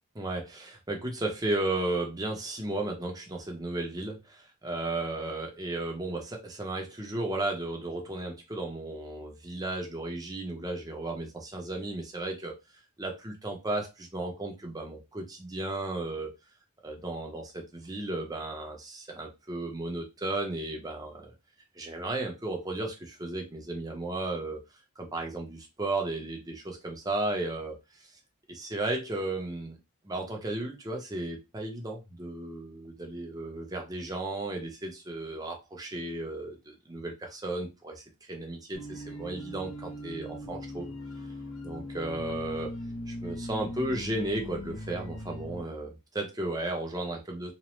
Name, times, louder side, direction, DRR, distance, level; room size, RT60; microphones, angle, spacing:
voice 1, 0.2-12.5 13.0-16.3 16.8-21.3 21.8-24.6 25.0-28.0 28.5-29.8 30.0-40.9 41.6-42.7 43.1-47.5, right 2 dB, 15° right, 2 dB, 0.6 m, -34 dB
sound 1, 38.7-45.6, left 1 dB, 70° left, 0.7 m, -40 dB
3.0 x 2.1 x 3.0 m, 0.24 s
head